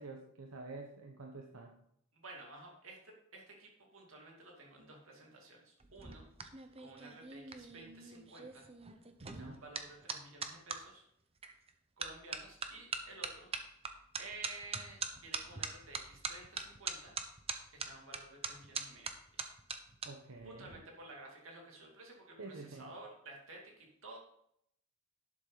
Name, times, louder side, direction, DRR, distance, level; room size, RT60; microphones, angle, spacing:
voice 1, 0.0-1.7 9.2-9.6 20.0-20.8 22.4-22.9, right 3 dB, 90° right, 2 dB, 1.1 m, -48 dB
voice 2, 2.1-6.2 6.8-8.7 9.2-11.0 12.0-13.5 14.2-17.2 17.7-19.5 20.4-24.2, right 2 dB, 70° right, 0 dB, 2.6 m, -53 dB
sound 1, 5.8-10.8 11.4-11.7 12.0-20.1 20.4-20.8, right 5 dB, 30° right, 0.8 m, -42 dB
11.5 x 7.4 x 4.0 m, 0.73 s
head